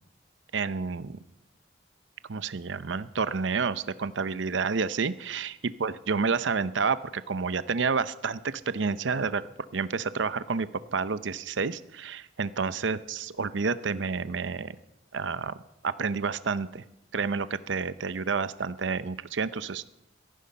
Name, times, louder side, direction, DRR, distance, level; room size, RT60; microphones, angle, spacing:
voice 1, 0.5-1.2 2.3-9.5 9.7-14.7 15.1-15.6 15.8-16.8 17.1-19.9, right 5 dB, 80° right, 14 dB, 0.7 m, -29 dB
17.0 x 14.0 x 5.4 m, 0.84 s
head